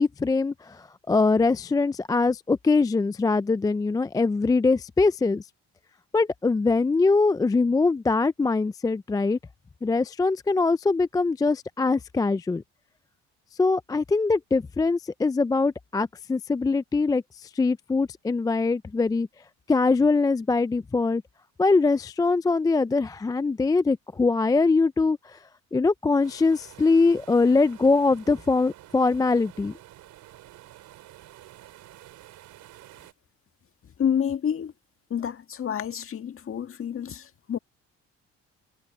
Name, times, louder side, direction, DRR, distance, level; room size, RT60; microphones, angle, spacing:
voice 1, 0.0-5.5 6.1-9.4 9.8-12.6 13.6-19.3 19.7-21.2 21.6-25.4 25.7-29.7, left 3 dB, 15° left, 0.3 m, -23 dB
sound 1, 26.2-33.1, right 14 dB, 75° right, 4.6 m, -49 dB
voice 2, 34.0-34.7 35.1-37.6, left 8 dB, 45° left, 1.9 m, -28 dB
cardioid pair, 90°, 29 cm